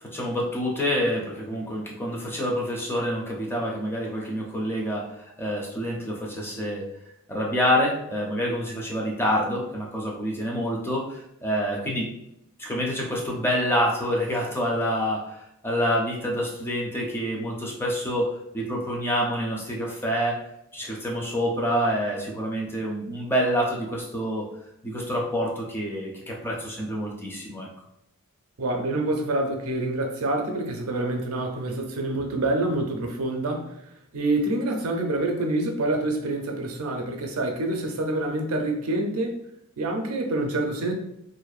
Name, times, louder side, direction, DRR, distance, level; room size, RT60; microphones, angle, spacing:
voice 1, 0.1-6.9 7.3-12.1 12.6-20.4 20.7-24.5 24.8-27.7, equal, 10° left, -2 dB, 0.5 m, -27 dB
voice 2, 28.6-33.7 34.1-39.4 39.8-40.9, right 2 dB, 65° right, 3 dB, 0.5 m, -27 dB
2.5 x 2.0 x 2.4 m, 0.81 s
head